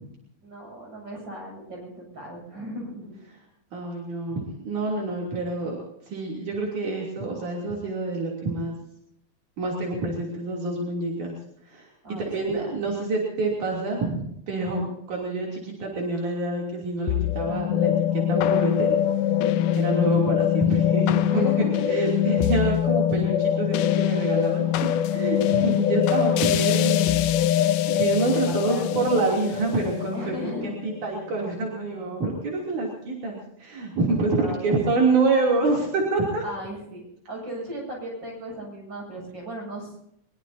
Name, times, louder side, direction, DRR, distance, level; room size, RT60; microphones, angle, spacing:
voice 1, 0.4-3.2 12.0-12.8 21.3-21.9 25.4-25.7 28.3-29.0 30.1-30.7 34.4-35.0 36.4-40.0, right 1 dB, 35° right, -1 dB, 8.6 m, -37 dB
voice 2, 3.7-5.8 6.0-8.8 9.6-11.4 11.6-11.9 12.3-19.0 19.8-24.7 25.1-27.2 27.4-30.3 30.8-36.4, right 3 dB, 70° right, -3 dB, 4.6 m, -27 dB
sound 1, 17.1-31.5, left 11 dB, 90° left, 2.3 m, -23 dB
23.0 x 22.5 x 2.8 m, 0.75 s
omnidirectional pair, 3.6 m